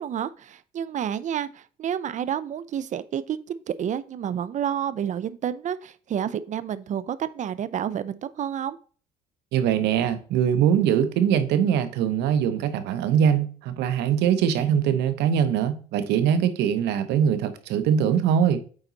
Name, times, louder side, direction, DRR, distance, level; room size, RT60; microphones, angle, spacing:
voice 1, 0.0-8.8, right 9 dB, 45° right, 0.6 m, -30 dB
voice 2, 9.5-18.6, right 8 dB, 85° right, 1.0 m, -22 dB
8.9 x 4.1 x 4.0 m
cardioid pair, 110°, 17 cm